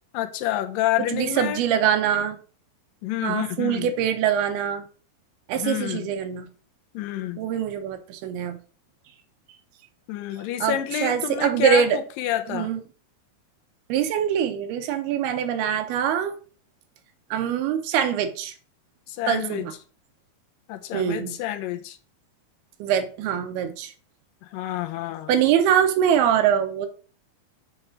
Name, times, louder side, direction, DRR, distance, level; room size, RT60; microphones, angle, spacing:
voice 1, 0.1-1.6 3.0-3.9 5.6-6.1 6.9-7.4 10.1-12.7 19.1-19.7 20.7-22.0 24.4-25.3, left 13 dB, 80° left, 2.2 m, -28 dB
voice 2, 1.1-2.4 3.2-4.9 5.5-6.5 7.4-8.6 10.6-12.0 12.5-12.8 13.9-16.4 17.3-18.5 19.3-19.7 20.9-21.4 22.8-23.9 25.3-26.9, right 9 dB, 85° right, 2.8 m, -23 dB
7.0 x 3.4 x 5.7 m
omnidirectional pair, 4.4 m